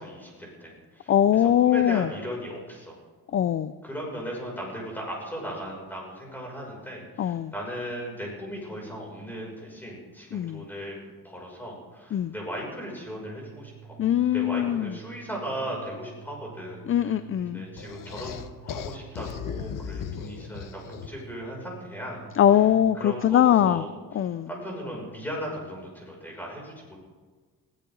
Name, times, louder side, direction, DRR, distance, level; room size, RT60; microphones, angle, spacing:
voice 1, 0.0-2.9 3.8-11.0 11.2-14.0 14.3-18.4 18.7-22.2 22.9-23.9 24.2-27.0, equal, 5° left, -2 dB, 6.7 m, -37 dB
voice 2, 1.1-2.1 3.3-3.7 7.2-7.5 10.3-10.6 12.1-12.3 14.0-14.9 16.9-17.7 22.3-23.8 24.1-24.5, left 10 dB, 35° left, 14 dB, 0.5 m, -22 dB
Organ, 13.1-23.4, right 11 dB, 35° right, 4.2 m, -49 dB
sound 1, 17.8-21.3, left 8 dB, 55° left, 1.1 m, -37 dB
21.5 x 16.0 x 4.0 m, 1.4 s
cardioid pair, 135°, 38 cm